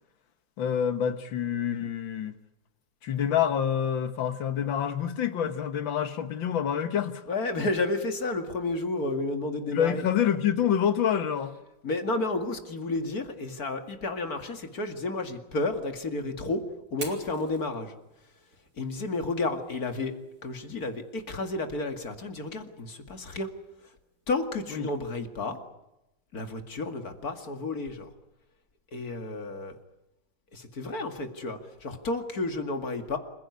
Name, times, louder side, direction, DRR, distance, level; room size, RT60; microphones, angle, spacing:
voice 1, 0.6-2.3 3.0-7.2 9.7-11.6 24.7-24.9, left 9 dB, 85° left, 2.1 m, -27 dB
voice 2, 7.3-10.0 11.8-16.6 16.9-17.9 18.8-20.1 20.4-23.5 24.3-25.6 26.3-28.1 28.9-29.8 30.5-33.2, left 2 dB, 50° left, 2.7 m, -31 dB
Fire, 16.9-24.8, right 2 dB, 45° right, 4.0 m, -50 dB
27.5 x 16.0 x 9.6 m
omnidirectional pair, 2.1 m